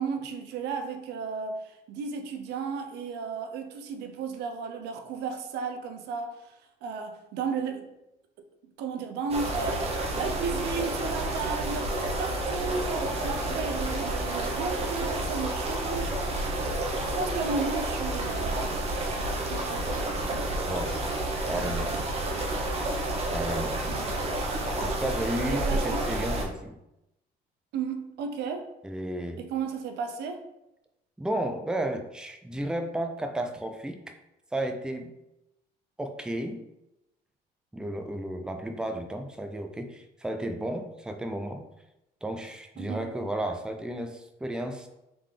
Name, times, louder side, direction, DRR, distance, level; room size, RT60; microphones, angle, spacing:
voice 1, 0.0-6.4 6.8-7.9 8.8-9.9 10.1-11.9 12.2-16.1 17.0-20.5 20.9-21.0 21.5-22.7 23.9-24.3 25.5-26.0 27.7-28.7 29.4-30.4 42.8-43.1, right 5 dB, 80° right, 6 dB, 0.6 m, -34 dB
sound 1, 9.3-26.4, right 1 dB, 35° right, 0.8 m, -30 dB
voice 2, 21.5-21.9 23.3-24.1 24.8-26.8 28.8-29.4 31.2-34.0 34.5-35.1 36.0-36.6 37.7-41.7 42.2-44.9, right 1 dB, 5° right, 5 dB, 0.4 m, -33 dB
3.8 x 3.5 x 3.3 m, 0.89 s
cardioid pair, 110°, 17 cm